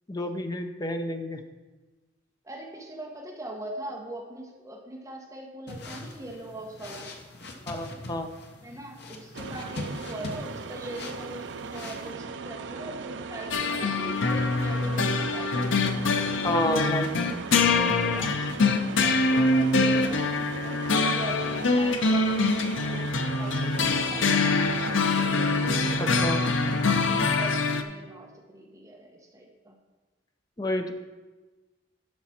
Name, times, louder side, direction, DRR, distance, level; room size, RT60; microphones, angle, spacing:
voice 1, 0.1-1.4 7.7-8.3 16.4-17.1 26.2-26.4 30.6-30.9, left 1 dB, 20° left, 6 dB, 0.6 m, -29 dB
voice 2, 2.4-7.1 8.6-16.5 16.7-24.6 25.3-29.7, right 1 dB, 15° right, -1 dB, 1.3 m, -41 dB
sound 1, 5.7-12.1, left 2 dB, 55° left, 1.1 m, -41 dB
sound 2, 9.3-27.3, right 4 dB, 65° right, 0.5 m, -39 dB
sound 3, 13.5-27.8, left 3 dB, 75° left, 0.7 m, -24 dB
11.5 x 5.9 x 4.3 m, 1.2 s
head